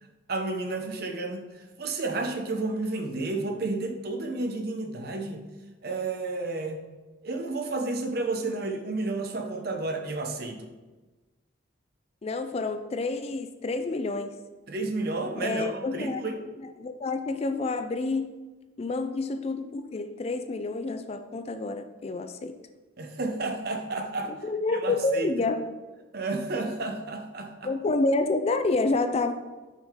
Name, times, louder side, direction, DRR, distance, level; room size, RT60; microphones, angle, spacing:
voice 1, 0.0-5.4 5.8-6.8 7.2-10.7 14.7-16.4 23.0-24.3 24.8-25.3 26.1-27.7, right 3 dB, 50° right, 4 dB, 0.7 m, -31 dB
voice 2, 12.2-14.3 15.4-16.3 16.8-18.3 18.8-22.5 24.3-25.6 27.6-29.3, left 3 dB, 30° left, 8 dB, 0.3 m, -28 dB
6.1 x 5.6 x 3.6 m, 1.2 s
head